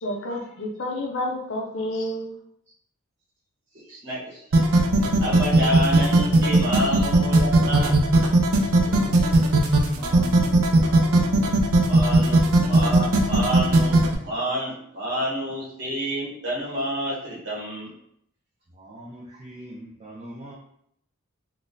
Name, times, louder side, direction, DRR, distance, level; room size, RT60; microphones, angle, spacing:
voice 1, 0.0-2.3, left 1 dB, 60° left, 1 dB, 0.5 m, -29 dB
voice 2, 3.7-4.6 5.2-8.0 11.9-14.0 14.2-17.9, equal, 50° right, -6 dB, 1.1 m, -29 dB
sound 1, 4.5-14.2, right 2 dB, 80° right, 0.5 m, -18 dB
voice 3, 8.8-11.3 18.8-20.5, right 1 dB, 25° right, -6 dB, 0.5 m, -41 dB
3.9 x 2.3 x 2.5 m, 0.73 s
head